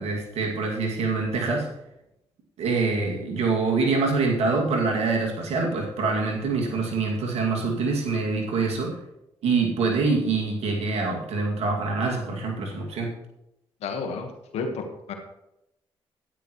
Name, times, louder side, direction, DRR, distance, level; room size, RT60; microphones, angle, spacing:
voice 1, 0.0-1.7 2.6-9.0 9.4-13.1, right 4 dB, 80° right, 0 dB, 2.4 m, -25 dB
voice 2, 13.8-15.1, left 4 dB, 80° left, 4 dB, 1.4 m, -32 dB
12.5 x 9.6 x 3.1 m, 0.86 s
supercardioid pair, 50°, 11 cm